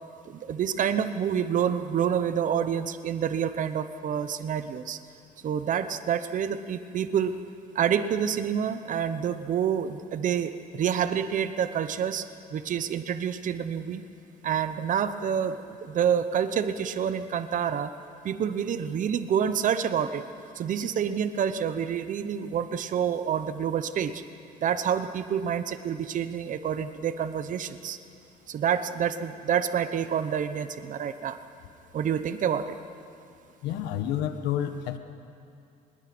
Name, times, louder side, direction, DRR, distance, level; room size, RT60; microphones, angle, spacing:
voice 1, 0.2-5.0 5.4-7.4 7.7-14.0 14.4-17.9 18.2-20.2 20.5-24.2 24.6-28.0 28.5-31.4 31.9-32.8 33.7-33.8, right 8 dB, 50° right, 11 dB, 1.0 m, -28 dB
voice 2, 33.6-35.0, left 10 dB, 85° left, 8 dB, 1.4 m, -29 dB
25.0 x 20.5 x 6.2 m, 2.5 s
cardioid pair, 110°, 17 cm